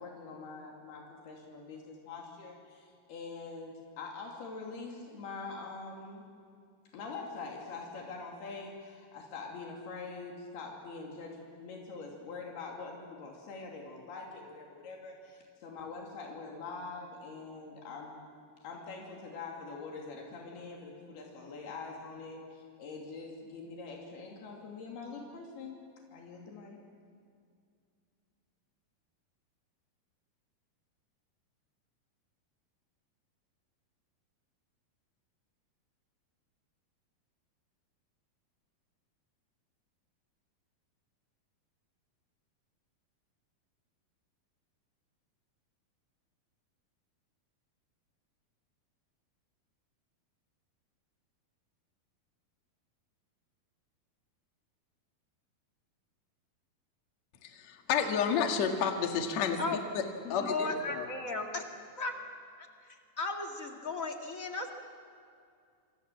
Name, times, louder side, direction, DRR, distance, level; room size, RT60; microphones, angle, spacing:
voice 1, 0.0-6.2 6.9-18.3 18.6-25.8 26.1-26.8, left 4 dB, 85° left, -1 dB, 4.7 m, -44 dB
voice 2, 57.5-59.6 59.9-60.0 60.3-61.1, left 7 dB, 50° left, 4 dB, 2.8 m, -30 dB
voice 3, 60.2-61.6 62.0-62.2 62.6-64.7, left 3 dB, 30° left, 3 dB, 1.8 m, -36 dB
28.0 x 26.5 x 7.4 m, 2.3 s
omnidirectional pair, 4.4 m